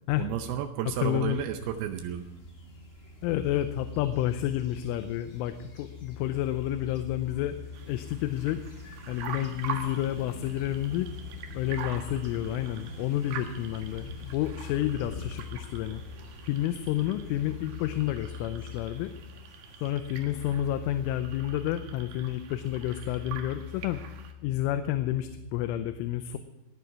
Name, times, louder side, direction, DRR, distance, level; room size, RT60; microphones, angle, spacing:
voice 1, 0.2-2.2, right 10 dB, 85° right, 6 dB, 2.2 m, -32 dB
sound 1, 0.9-19.9, left 2 dB, 35° left, 1.3 m, -47 dB
voice 2, 1.0-1.4 3.2-7.5 7.9-8.6 9.1-11.1 11.5-16.0 16.4-19.1 19.8-24.0 24.4-26.4, left 12 dB, 90° left, 9 dB, 3.3 m, -30 dB
sound 2, 7.7-24.3, right 7 dB, 70° right, 3.5 m, -45 dB
19.0 x 11.0 x 4.7 m, 1.1 s
omnidirectional pair, 5.6 m